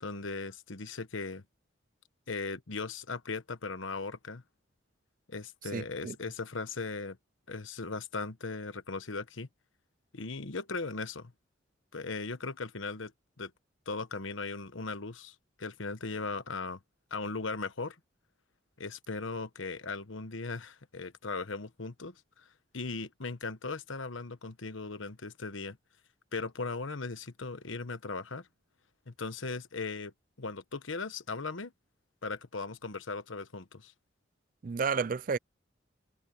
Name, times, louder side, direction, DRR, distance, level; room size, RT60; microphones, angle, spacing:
voice 1, 0.0-1.4 2.3-4.4 5.3-7.2 7.5-9.5 10.1-11.3 11.9-13.1 13.4-13.5 13.9-16.8 17.1-18.0 18.8-22.5 22.7-25.8 26.3-28.5 29.1-30.1 30.4-31.7 32.2-33.9, left 3 dB, 85° left, 1.2 m, -38 dB
voice 2, 5.7-6.1 34.6-35.4, right 5 dB, 45° right, 0.4 m, -31 dB
head